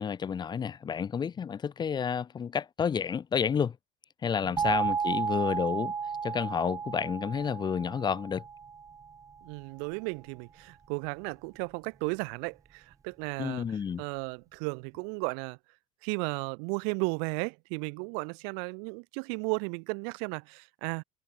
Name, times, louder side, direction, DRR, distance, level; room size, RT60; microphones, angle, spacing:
voice 1, 0.0-3.8 4.2-5.9 6.2-8.4 13.4-14.0, left 7 dB, 25° left, 1.0 m, -30 dB
sound 1, 4.6-9.3, right 6 dB, 20° right, 0.7 m, -33 dB
voice 2, 9.4-13.6 14.0-15.6 16.0-21.0, right 40 dB or more, 85° right, 1.2 m, -34 dB
cardioid pair, 140°, 17 cm